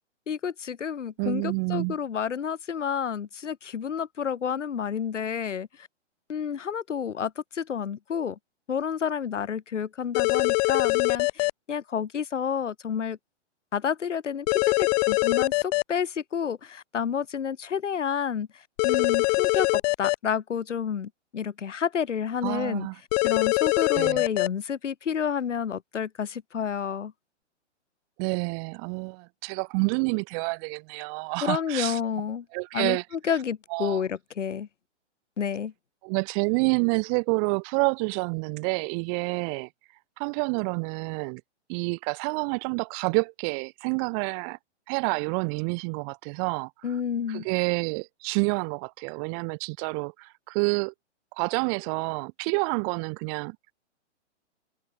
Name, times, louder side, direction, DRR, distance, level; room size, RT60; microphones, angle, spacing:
voice 1, 0.3-5.7 6.3-8.4 8.7-13.2 13.7-18.5 18.8-19.7 20.0-22.9 23.2-27.1 31.4-32.4 32.7-33.0 33.3-34.7 35.4-35.7 46.8-47.5, left 7 dB, 80° left, 3.5 m, -30 dB
voice 2, 1.2-2.0 22.4-23.0 23.9-24.2 28.2-32.0 32.5-33.0 33.7-34.0 36.0-39.7 40.2-41.4 41.7-44.6 44.9-47.0 47.3-50.9 51.4-53.6, right 40 dB or more, 30° right, 2.0 m, -28 dB
sound 1, 10.1-11.5 14.5-15.8 18.8-20.1 23.1-24.5, left 25 dB, 35° left, 2.5 m, -23 dB
hypercardioid pair, 150°, 36 cm